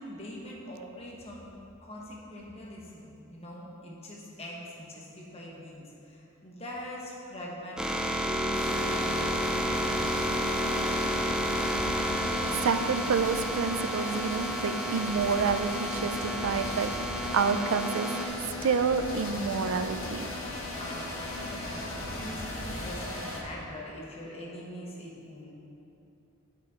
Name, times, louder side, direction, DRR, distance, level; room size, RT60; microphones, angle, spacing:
voice 1, 0.0-1.5 1.8-8.0 8.3-10.4 12.3-12.4 20.8-25.5, left 1 dB, 30° left, -3 dB, 1.3 m, -43 dB
sound 1, 7.8-18.3, equal, 5° right, 0.4 m, -32 dB
Wind instrument woodwind instrument, 8.1-12.6, equal, 20° right, 0.9 m, -37 dB
sound 2, 8.5-23.4, left 1 dB, 70° left, 1.5 m, -36 dB
voice 2, 12.5-18.1 18.4-20.3, right 5 dB, 75° right, 10 dB, 0.4 m, -29 dB
9.2 x 6.0 x 4.3 m, 2.7 s
head